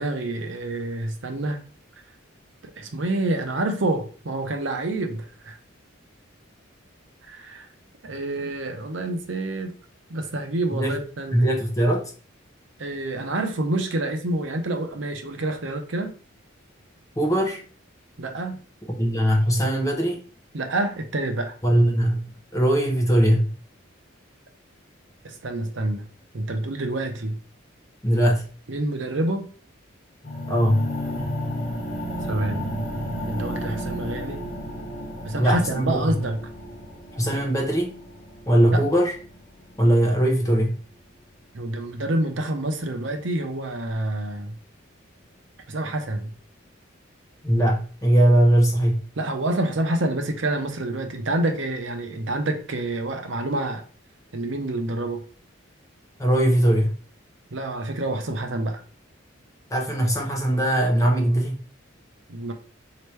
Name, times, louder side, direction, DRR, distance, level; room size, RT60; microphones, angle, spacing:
voice 1, 0.0-1.6 2.8-5.6 7.2-7.7 8.0-9.7 10.1-11.5 12.8-16.1 18.2-18.6 20.5-21.5 25.2-26.0 26.3-27.4 28.7-29.5 32.3-32.9 33.2-34.5 35.2-36.4 38.7-38.8 41.5-44.5 45.7-46.3 49.2-53.8 54.3-55.2 57.5-58.8 62.3-62.5, right 2 dB, 65° right, 0.7 m, -27 dB
voice 2, 11.3-12.1 17.2-17.6 19.0-20.2 21.6-23.5 28.0-28.5 30.5-30.9 35.4-36.2 37.1-38.0 38.5-39.2 39.8-40.8 47.4-49.0 56.2-57.0 59.7-61.5, right 1 dB, 15° left, 0.8 m, -20 dB
sound 1, 30.2-40.2, equal, 45° left, 1.4 m, -33 dB
4.4 x 2.9 x 3.2 m
head